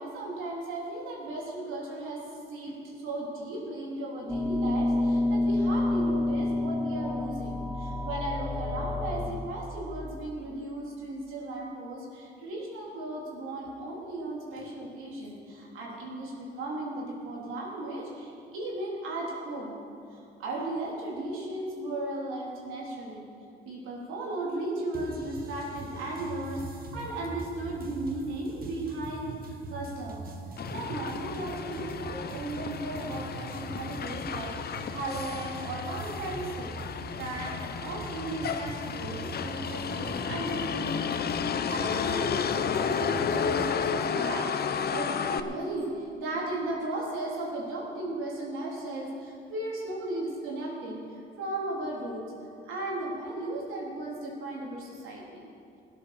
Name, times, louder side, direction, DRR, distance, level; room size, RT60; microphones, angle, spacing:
voice 1, 0.0-2.2 2.5-16.3 16.6-19.8 20.4-23.3 23.7-30.2 30.7-51.0 51.4-52.2 52.7-55.5, right 2 dB, 90° right, -4 dB, 3.7 m, -36 dB
sound 1, 4.3-9.3, left 2 dB, ahead, 1.2 m, -28 dB
sound 2, 24.9-43.7, right 2 dB, 50° right, 1.7 m, -42 dB
Motor vehicle (road), 30.6-45.4, left 7 dB, 50° left, 0.8 m, -32 dB
17.0 x 8.5 x 6.7 m, 2.5 s
cardioid pair, 90°, 20 cm